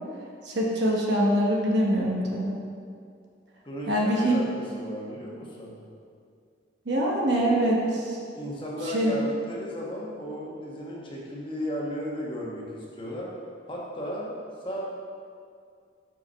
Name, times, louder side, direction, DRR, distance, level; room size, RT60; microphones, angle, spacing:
voice 1, 0.4-2.5 3.9-4.4 6.9-8.2 8.9-9.1, right 1 dB, 65° right, -3 dB, 1.0 m, -24 dB
voice 2, 3.6-5.7 8.3-13.3 13.7-14.3 14.6-14.8, equal, 25° left, -4 dB, 1.1 m, -35 dB
6.0 x 5.1 x 5.5 m, 2.3 s
head